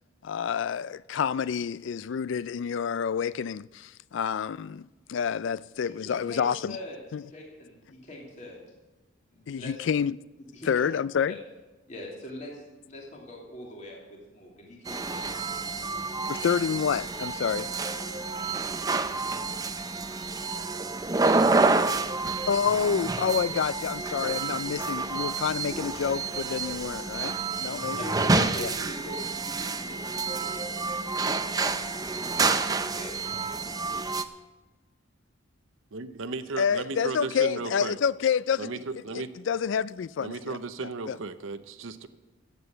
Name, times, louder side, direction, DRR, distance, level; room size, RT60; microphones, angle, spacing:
voice 1, 0.2-6.8 7.1-7.2 9.5-10.2 10.6-11.3 16.3-17.7 22.5-28.1 28.3-28.7 36.6-40.6 41.1-41.2, left 7 dB, 65° left, 0.3 m, -28 dB
voice 2, 5.8-7.0 7.3-8.6 9.3-9.8 10.5-10.7 11.3-11.4 11.9-15.3 27.6-30.8 31.4-31.9 32.4-33.3, left 1 dB, 35° left, 2.7 m, -42 dB
sound 1, 14.9-34.2, right 3 dB, 20° right, 0.5 m, -29 dB
voice 3, 35.9-38.0 38.6-39.3 40.2-42.1, right 3 dB, 80° right, 0.7 m, -35 dB
15.0 x 8.2 x 6.7 m
head